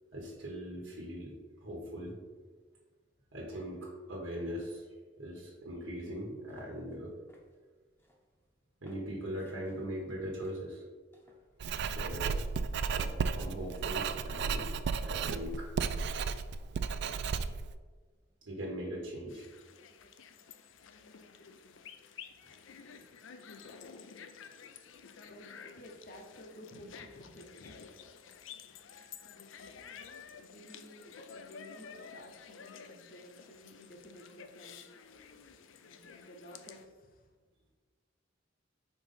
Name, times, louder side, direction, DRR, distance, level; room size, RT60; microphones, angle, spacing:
voice 1, 0.1-2.2 3.3-4.9 5.2-7.1 8.8-10.8 11.8-12.4 12.9-14.7 15.0-15.7 18.4-19.5, equal, 75° right, -3 dB, 1.2 m, -40 dB
sound 1, 6.0-6.2 6.5-12.2, equal, 10° left, 0.8 m, -60 dB
Writing, 11.6-17.7, right 5 dB, 60° right, 0.3 m, -34 dB
sound 2, 19.3-36.8, left 6 dB, 75° left, 0.5 m, -51 dB
voice 2, 25.2-27.8 30.4-34.9 35.8-37.3, left 1 dB, 45° left, 3 dB, 0.8 m, -53 dB
4.5 x 3.9 x 5.6 m, 1.4 s
head